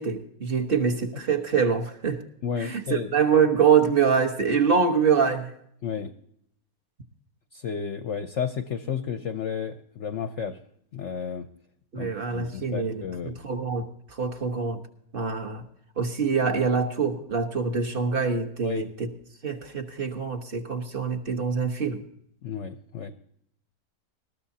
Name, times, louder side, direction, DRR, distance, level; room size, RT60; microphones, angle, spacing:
voice 1, 0.0-2.2 2.6-5.5 11.9-14.8 15.1-15.6 16.0-19.1 19.4-22.0, right 6 dB, 35° right, 6 dB, 1.2 m, -25 dB
voice 2, 2.4-3.1 5.8-6.1 7.5-10.6 10.9-11.5 11.9-13.4 18.6-18.9 22.4-23.1, left 7 dB, 60° left, 10 dB, 0.8 m, -32 dB
20.5 x 13.5 x 2.8 m, 0.70 s
omnidirectional pair, 1.9 m